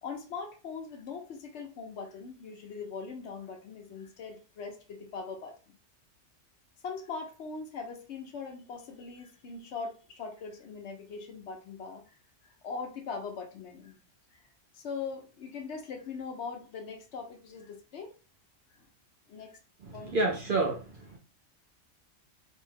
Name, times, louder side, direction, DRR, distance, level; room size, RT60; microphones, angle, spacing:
voice 1, 0.0-5.8 6.8-12.0 12.6-14.0 14.7-18.1 19.3-19.6 19.9-20.2, left 5 dB, 65° left, 0.9 m, -41 dB
voice 2, 19.8-21.2, right 2 dB, 55° right, 0.6 m, -30 dB
2.6 x 2.2 x 3.3 m
omnidirectional pair, 1.3 m